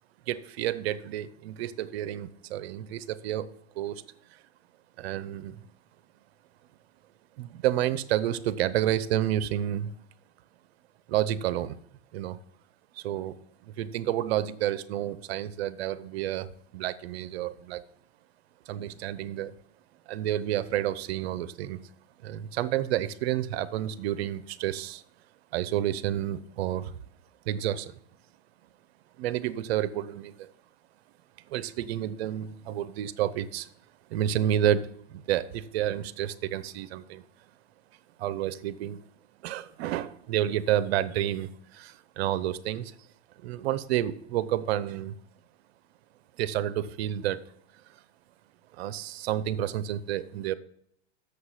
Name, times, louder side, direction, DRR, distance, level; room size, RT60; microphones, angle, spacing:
voice 1, 0.3-4.0 5.0-5.6 7.4-9.9 11.1-11.8 12.1-12.4 13.0-13.4 13.6-16.5 16.7-17.8 18.7-19.5 20.1-21.8 22.2-25.0 25.5-26.9 27.5-27.9 29.2-30.5 31.5-33.7 34.1-37.2 38.2-39.0 39.4-42.9 43.4-45.1 46.4-47.4 48.7-50.5, right 12 dB, 70° right, 16 dB, 0.7 m, -30 dB
6.8 x 6.7 x 5.6 m, 0.69 s
hypercardioid pair, 125°, 33 cm